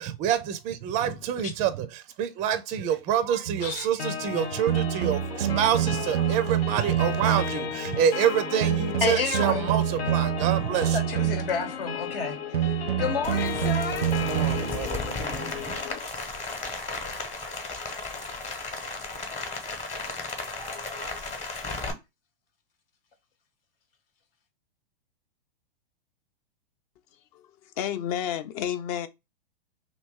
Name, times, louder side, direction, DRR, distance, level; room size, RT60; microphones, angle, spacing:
voice 1, 0.0-11.0 14.0-15.8, right 9 dB, 25° right, 0.4 m, -27 dB
sound 1, 3.5-3.7 4.7-7.7 8.6-11.6 12.5-14.7, right 12 dB, 85° right, 0.5 m, -27 dB
sound 2, 4.0-16.0, left 7 dB, 85° left, 0.6 m, -34 dB
voice 2, 9.0-9.7 10.6-14.2, left 5 dB, 70° left, 1.1 m, -31 dB
Rain, 13.2-21.9, left 3 dB, 25° left, 1.0 m, -35 dB
voice 3, 27.3-29.1, left 10 dB, 40° left, 0.5 m, -31 dB
2.9 x 2.7 x 3.5 m
hypercardioid pair, 115°, 30 cm